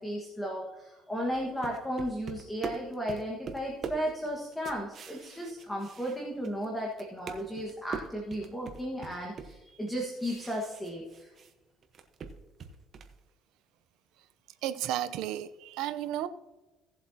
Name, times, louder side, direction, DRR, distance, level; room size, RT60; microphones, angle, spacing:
voice 1, 0.0-11.3, equal, 10° left, -1 dB, 1.5 m, -35 dB
sound 1, 1.3-6.6 6.9-11.5 11.8-13.2, right 5 dB, 40° right, 1.1 m, -43 dB
voice 2, 14.6-16.3, right 12 dB, 75° right, 11 dB, 0.6 m, -33 dB
17.5 x 7.7 x 2.8 m, 1.2 s
cardioid pair, 140°, 0 cm